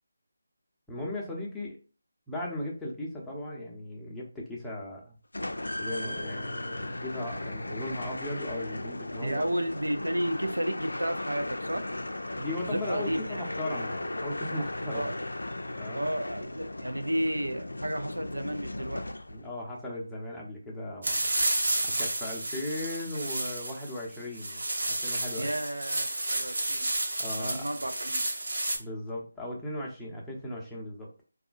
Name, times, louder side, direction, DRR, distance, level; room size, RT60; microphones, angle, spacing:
voice 1, 0.9-1.8 2.3-5.1 5.8-9.4 12.4-15.1 15.8-16.1 19.3-21.3 21.8-25.6 27.2-27.7 28.8-31.2, left 1 dB, 5° left, -5 dB, 0.6 m, -37 dB
sound 1, 5.3-19.6, left 1 dB, 80° left, 0.3 m, -36 dB
voice 2, 9.2-11.8 12.6-13.4 14.9-15.1 15.9-19.0 25.4-26.9 27.3-28.2, right 1 dB, 85° right, 7 dB, 0.5 m, -32 dB
sound 2, 21.0-28.8, right 1 dB, 65° right, 1.1 m, -31 dB
3.6 x 2.3 x 2.5 m, 0.36 s
figure-of-eight pair, 160°, 0 cm